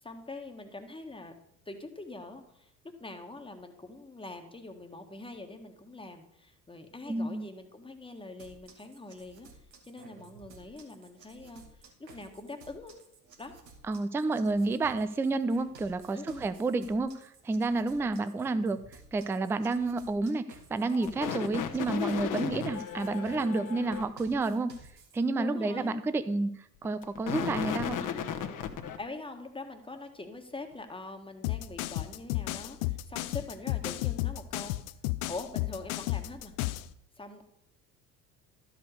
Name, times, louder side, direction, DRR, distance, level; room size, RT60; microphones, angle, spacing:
voice 1, 0.0-1.3 1.6-2.7 3.0-9.5 9.8-12.9 13.4-13.5 16.1-16.4 18.0-18.3 25.4-26.0 29.0-34.8 35.3-36.5 37.2-37.5, left 2 dB, 10° left, 5 dB, 1.5 m, -43 dB
voice 2, 7.1-7.5 13.8-18.8 19.1-20.4 20.7-24.7 25.1-26.5 26.8-28.0, right 3 dB, 5° right, 12 dB, 0.4 m, -30 dB
sound 1, 8.4-25.2, right 4 dB, 80° right, 1.7 m, -55 dB
sound 2, 20.9-24.0 26.8-29.0, left 8 dB, 40° left, 1.3 m, -35 dB
sound 3, 31.4-36.9, left 18 dB, 60° left, 0.7 m, -33 dB
12.5 x 5.1 x 6.6 m, 0.73 s
figure-of-eight pair, 65°, 49 cm